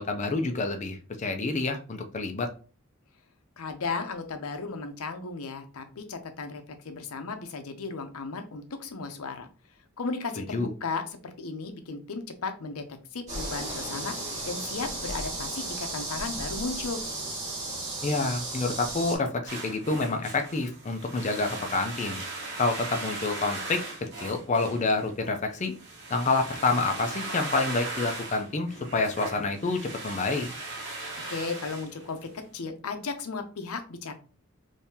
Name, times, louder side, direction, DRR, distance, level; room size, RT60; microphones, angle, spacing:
voice 1, 0.0-2.5 10.4-10.7 18.0-22.2 22.6-25.7 26.1-30.5, left 3 dB, 35° left, 5 dB, 0.5 m, -28 dB
voice 2, 3.6-9.5 10.0-12.8 13.1-17.0 31.3-34.1, left 4 dB, 85° left, 7 dB, 0.6 m, -35 dB
sound 1, 13.3-19.2, right 2 dB, 35° right, 1.5 m, -34 dB
sound 2, 19.5-32.5, right 2 dB, 50° right, 1.1 m, -38 dB
3.6 x 2.7 x 2.7 m, 0.37 s
head